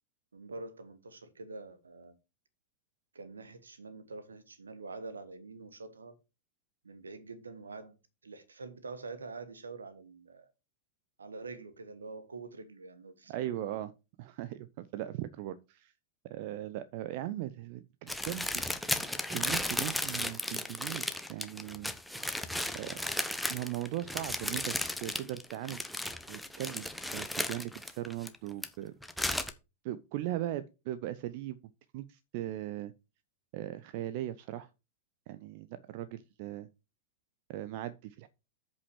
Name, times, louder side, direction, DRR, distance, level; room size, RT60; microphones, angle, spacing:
voice 1, 0.3-2.1 3.1-6.1 6.8-8.0 8.2-10.5 11.2-13.8, right 3 dB, 75° right, 1.2 m, -46 dB
voice 2, 13.3-13.9 14.2-15.9 16.3-21.9 22.7-23.0 23.5-25.8 26.3-28.9 29.8-31.6 31.9-32.9 33.5-34.7 35.3-36.7 37.5-38.3, right 13 dB, 50° right, 0.5 m, -39 dB
sound 1, 18.1-28.7 29.0-29.5, left 1 dB, ahead, 0.9 m, -35 dB
8.1 x 5.5 x 4.6 m
figure-of-eight pair, 90°, 0 cm